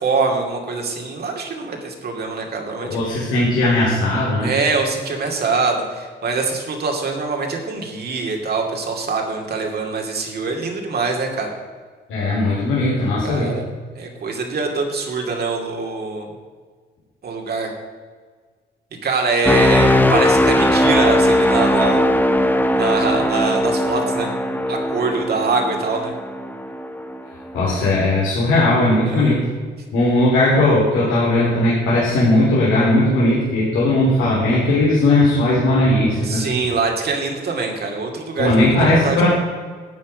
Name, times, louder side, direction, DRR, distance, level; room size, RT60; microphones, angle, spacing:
voice 1, 0.0-3.2 4.4-11.5 13.2-13.6 14.0-16.3 17.2-17.7 19.0-22.1 22.8-24.3 24.7-26.1 29.1-29.4 36.2-39.3, right 4 dB, 55° right, 1 dB, 2.5 m, -23 dB
voice 2, 2.8-4.5 12.1-13.6 27.5-29.5 29.9-36.4 38.4-39.3, left 1 dB, 90° left, -7 dB, 3.3 m, -17 dB
sound 1, 19.4-27.3 27.7-28.0, left 1 dB, 10° left, 0.9 m, -18 dB
12.0 x 8.7 x 5.1 m, 1.5 s
cardioid pair, 90°, 20 cm